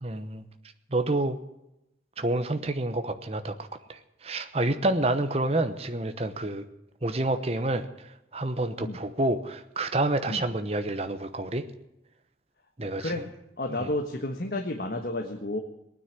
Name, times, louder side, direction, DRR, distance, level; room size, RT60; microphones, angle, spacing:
voice 1, 0.0-0.4 0.9-1.4 2.2-3.5 3.9-6.6 7.0-7.8 8.3-11.6 12.8-13.1 13.8-13.9, right 2 dB, 35° right, 8 dB, 1.0 m, -28 dB
voice 2, 12.8-13.3 13.6-15.6, left 1 dB, 60° left, 3 dB, 1.4 m, -31 dB
19.5 x 9.8 x 7.4 m, 0.89 s
head